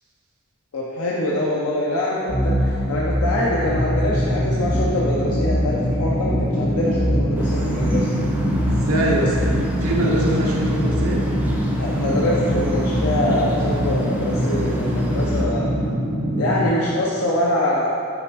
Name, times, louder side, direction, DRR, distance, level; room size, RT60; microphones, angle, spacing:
voice 1, 0.7-8.1 11.8-15.7 16.4-17.9, left 1 dB, 85° left, -5 dB, 0.6 m, -24 dB
sound 1, 2.3-15.9, equal, 40° left, 1.2 m, -25 dB
sound 2, 3.7-16.7, equal, 40° right, 1.3 m, -24 dB
sound 3, 7.3-15.4, equal, 10° right, 0.6 m, -36 dB
voice 2, 8.6-9.4 9.8-11.2, right 1 dB, 75° right, -4 dB, 1.1 m, -23 dB
6.0 x 5.0 x 3.4 m, 2.6 s
head